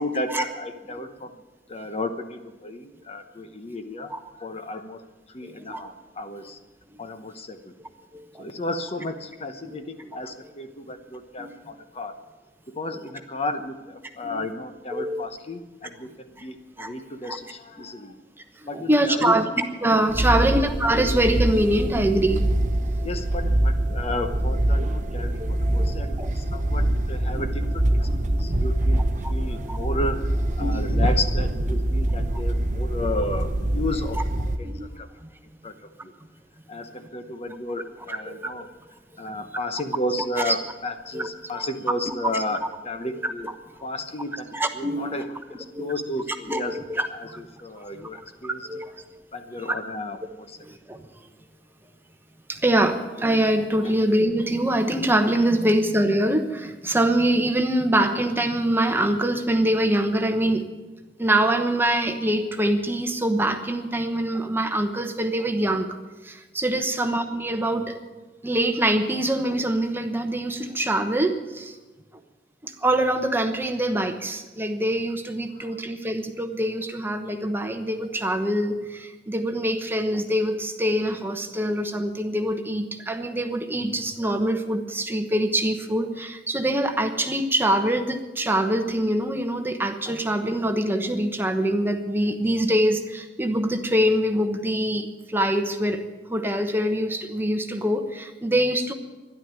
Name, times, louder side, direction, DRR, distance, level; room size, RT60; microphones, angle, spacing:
voice 1, 0.0-1.4 1.7-4.1 4.4-5.0 5.3-6.6 7.0-7.7 8.4-12.2 12.7-18.2 18.7-19.4 20.2-20.5 23.0-35.1 35.6-36.1 36.7-38.7 39.2-43.5 43.8-46.8 47.1-48.8 49.3-50.6 53.8-53.9 66.7-66.8 75.5-75.8, left 2 dB, 35° left, 8 dB, 0.9 m, -33 dB
voice 2, 5.5-5.8 8.1-8.5 11.4-11.5 14.2-14.4 14.9-15.2 16.4-16.5 16.8-16.9 17.2-17.4 18.6-19.5 19.8-22.4 25.4-25.5 25.8-25.9 26.2-26.3 26.8-26.9 28.1-28.6 29.2-29.3 29.7-29.8 30.6-30.9 34.6-34.9 38.3-38.5 39.2-39.3 40.5-40.6 41.1-41.6 43.4-43.5 44.5-45.1 45.7-45.9 46.5-47.4 47.8-47.9 48.6-49.1 50.6-51.0 52.5-60.7 61.2-66.0 66.2-68.0 68.4-71.8 72.6-98.9, right 1 dB, 15° right, 6 dB, 1.0 m, -24 dB
sound 1, 20.1-34.6, right 1 dB, 45° right, 0.9 m, -24 dB
12.5 x 11.5 x 9.0 m, 1.2 s
head